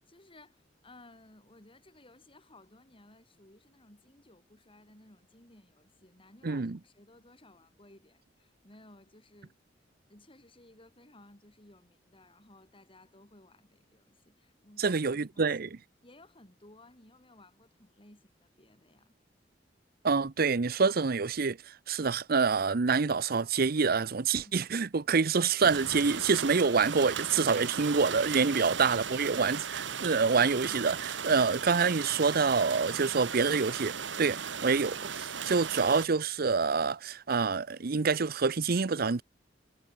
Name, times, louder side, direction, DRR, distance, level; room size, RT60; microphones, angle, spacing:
voice 1, 0.0-9.6 10.1-15.1 15.3-15.5 16.0-19.1 24.4-24.5, left 2 dB, 30° left, 6.2 m, -58 dB
voice 2, 6.4-6.8 14.8-15.7 20.0-39.2, right 5 dB, 55° right, 0.7 m, -27 dB
sound 1, 25.6-36.1, right 7 dB, 80° right, 1.6 m, -37 dB
head